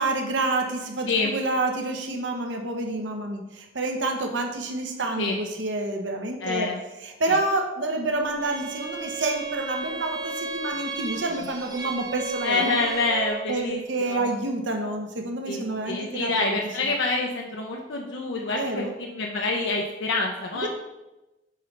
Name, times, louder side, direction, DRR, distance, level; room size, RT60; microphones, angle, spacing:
voice 1, 0.0-6.7 7.0-12.9 13.5-16.6 18.5-18.9 20.5-20.7, right 2 dB, 80° right, 3 dB, 1.0 m, -28 dB
voice 2, 6.4-6.8 7.3-7.4 12.4-14.2 15.5-15.6 15.9-20.7, left 3 dB, 85° left, 0 dB, 0.7 m, -27 dB
Bowed string instrument, 8.4-13.6, right 3 dB, 20° right, 0.5 m, -34 dB
7.7 x 3.3 x 5.3 m, 1.0 s
head